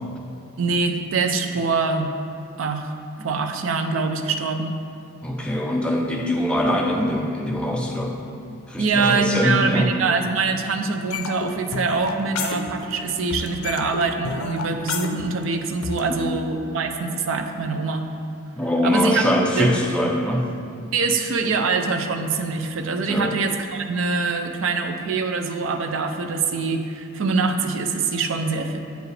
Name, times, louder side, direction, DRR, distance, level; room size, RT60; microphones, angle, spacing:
voice 1, 0.6-2.1 2.6-4.8 8.8-18.1 18.8-19.3 19.6-20.1 20.9-28.8, right 4 dB, 65° right, 6 dB, 0.4 m, -24 dB
voice 2, 5.2-8.1 8.7-9.9 16.1-16.4 18.6-20.5 23.1-23.3, left 1 dB, 5° left, -1 dB, 0.4 m, -23 dB
sound 1, 11.1-13.1 13.3-16.1, left 4 dB, 80° left, 0.5 m, -30 dB
7.8 x 4.8 x 3.3 m, 2.5 s
head